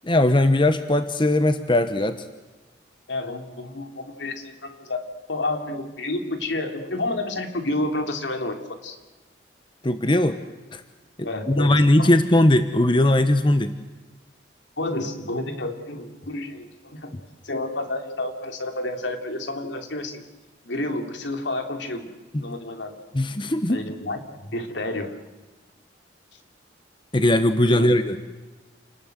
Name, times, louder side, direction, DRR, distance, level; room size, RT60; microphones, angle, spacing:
voice 1, 0.1-2.2 9.8-10.4 10.7-10.8 11.2-13.7 23.1-23.8 27.1-28.2, left 1 dB, 25° left, 10 dB, 1.0 m, -19 dB
voice 2, 3.1-5.0 5.3-9.0 11.2-12.1 14.8-17.1 17.4-20.2 20.6-22.1 22.4-22.9 23.7-25.2 27.7-27.9, left 2 dB, 75° left, 5 dB, 3.1 m, -30 dB
29.0 x 20.0 x 8.1 m, 1.2 s
head